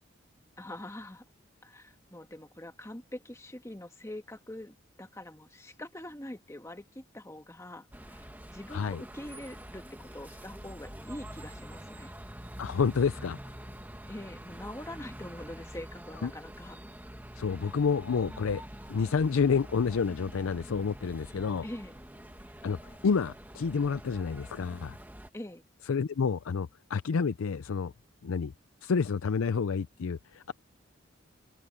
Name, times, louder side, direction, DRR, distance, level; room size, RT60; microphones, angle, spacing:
voice 1, 0.6-1.2 1.6-12.1 14.1-16.8 21.6-22.0 25.3-25.6, left 1 dB, 15° left, 1.5 m, -44 dB
sound 1, 7.9-25.3, right 1 dB, 10° right, 1.6 m, -46 dB
voice 2, 8.7-9.0 12.6-13.4 16.2-16.3 17.4-18.6 18.9-21.6 22.6-25.0 25.9-27.9 28.2-28.5 28.8-30.5, left 5 dB, 85° left, 0.5 m, -29 dB
head